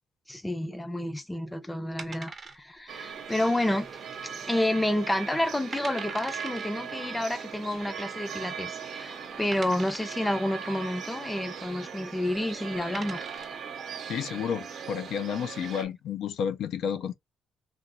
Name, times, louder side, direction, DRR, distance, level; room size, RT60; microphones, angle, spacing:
voice 1, 0.3-3.9 4.2-13.2, left 1 dB, 10° left, 0.6 m, -30 dB
sound 1, 2.0-2.9 3.2-3.3 3.9-4.3 4.7-4.8 5.4-5.5 5.7-6.7 7.8-7.9 8.6-8.7 9.5-10.3 12.2-12.4 12.7-13.6, right 4 dB, 40° right, 0.7 m, -42 dB
sound 2, 2.9-15.8, right 7 dB, 65° right, 0.9 m, -39 dB
voice 2, 14.1-17.1, left 8 dB, 75° left, 0.4 m, -31 dB
3.0 x 2.5 x 2.6 m
cardioid pair, 90°, 0 cm